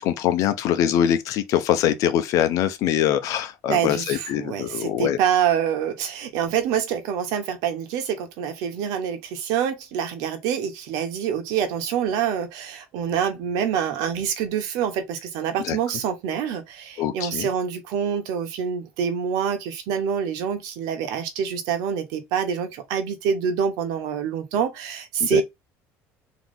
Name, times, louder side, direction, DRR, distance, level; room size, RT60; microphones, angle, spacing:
voice 1, 0.0-5.2 15.6-15.8 17.0-17.5 25.2-25.4, left 10 dB, 60° left, 0.9 m, -23 dB
voice 2, 3.7-25.4, right 8 dB, 75° right, 1.2 m, -26 dB
3.9 x 3.1 x 3.6 m
cardioid pair, 125°, 6 cm